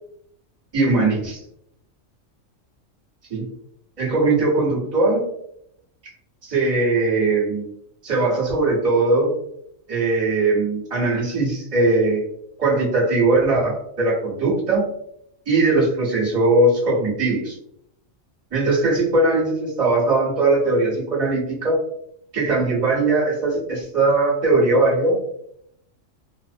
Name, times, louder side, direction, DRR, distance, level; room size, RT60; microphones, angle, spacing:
voice 1, 0.7-1.4 3.3-3.5 4.0-5.2 6.0-6.1 6.4-7.6 8.0-9.3 9.9-12.2 12.6-14.8 15.5-17.6 18.5-21.8 22.3-25.2, right 2 dB, 30° right, -6 dB, 1.0 m, -20 dB
2.4 x 2.0 x 2.6 m, 0.72 s
omnidirectional pair, 1.4 m